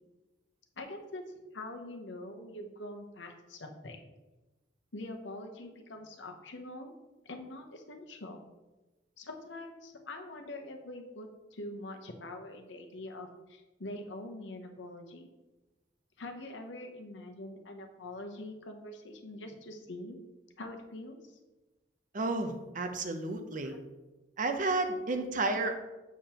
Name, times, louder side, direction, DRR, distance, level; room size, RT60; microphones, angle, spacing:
voice 1, 0.8-1.2 1.5-4.0 4.9-7.0 7.2-8.4 9.2-15.3 16.2-20.2 20.6-21.4 23.6-23.8, left 1 dB, 85° left, 4 dB, 0.9 m, -44 dB
voice 2, 22.1-23.7 24.4-25.7, right 2 dB, 45° right, 6 dB, 0.7 m, -31 dB
7.0 x 6.6 x 2.9 m, 1.1 s
head